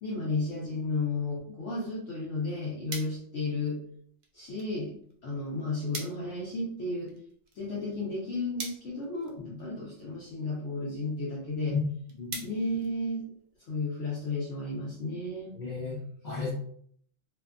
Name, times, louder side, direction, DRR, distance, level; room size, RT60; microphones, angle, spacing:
voice 1, 0.0-3.8 4.3-4.9 5.2-7.1 7.5-11.8 12.4-13.3 13.7-15.5, left 2 dB, 65° left, -5 dB, 1.0 m, -33 dB
sound 1, 2.9-13.6, right 3 dB, 65° right, 0.4 m, -47 dB
voice 2, 15.5-16.5, left 4 dB, 45° left, -5 dB, 0.6 m, -34 dB
2.6 x 2.2 x 2.4 m, 0.63 s
omnidirectional pair, 1.4 m